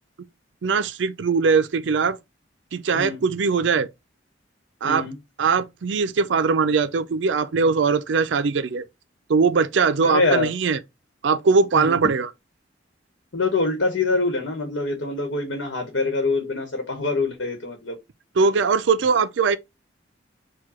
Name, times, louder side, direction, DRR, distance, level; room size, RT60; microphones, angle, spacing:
voice 1, 0.6-2.2 2.7-3.9 4.8-5.1 5.4-8.8 9.3-10.8 11.2-12.3 18.4-19.6, right 5 dB, 75° right, 0.4 m, -21 dB
voice 2, 4.8-5.2 10.0-10.5 11.7-12.0 13.3-18.0, left 3 dB, 85° left, 1.1 m, -24 dB
4.6 x 2.2 x 4.2 m
head